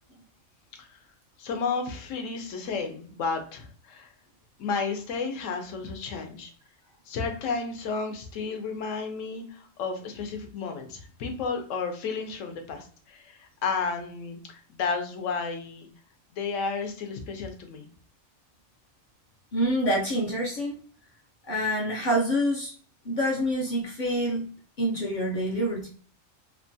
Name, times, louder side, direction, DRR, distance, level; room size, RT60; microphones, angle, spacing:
voice 1, 1.4-4.1 4.6-6.5 7.1-15.9 16.3-17.9, left 5 dB, 80° left, 5 dB, 0.9 m, -32 dB
voice 2, 19.5-20.7 21.5-22.7 23.0-24.5 24.8-25.9, equal, 55° left, -3 dB, 0.5 m, -26 dB
2.9 x 2.2 x 2.6 m, 0.43 s
omnidirectional pair, 1.3 m